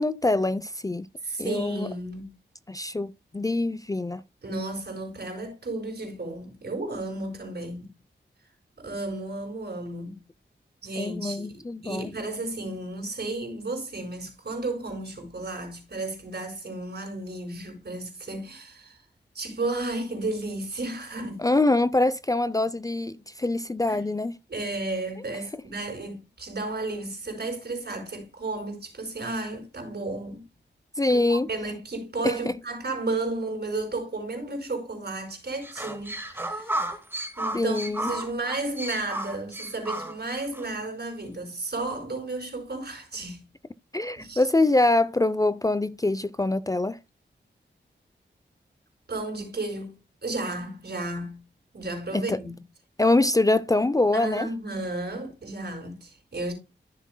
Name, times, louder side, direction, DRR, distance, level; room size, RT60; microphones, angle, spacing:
voice 1, 0.0-1.1 1.4-1.9 2.7-4.2 11.0-12.1 21.4-24.4 31.0-31.5 32.2-32.4 37.5-38.1 43.9-47.0 52.1-52.4 53.0-54.5, left 2 dB, 20° left, 0.5 m, -24 dB
voice 2, 1.2-2.3 4.4-7.9 8.8-10.2 10.8-19.0 19.3-21.5 23.9-24.0 24.5-30.4 31.1-36.7 37.4-43.4 44.1-44.4 49.1-51.4 51.7-52.5 54.1-56.5, right 2 dB, 60° right, 4.9 m, -33 dB
sound 1, 35.6-40.7, right 1 dB, 10° right, 2.4 m, -33 dB
14.0 x 7.2 x 2.2 m
wide cardioid pair, 80°, 19 cm